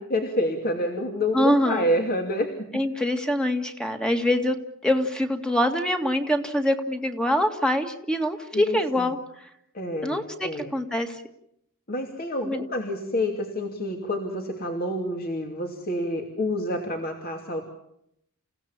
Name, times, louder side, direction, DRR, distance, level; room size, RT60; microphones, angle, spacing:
voice 1, 0.0-2.5 8.5-9.1 9.7-10.7 11.9-17.6, left 1 dB, 45° left, 2 dB, 2.7 m, -28 dB
voice 2, 1.3-1.9 2.7-4.6 4.8-9.2 10.0-11.2 12.4-12.7, left 1 dB, 5° left, 5 dB, 1.9 m, -24 dB
29.5 x 16.5 x 7.3 m, 0.75 s
head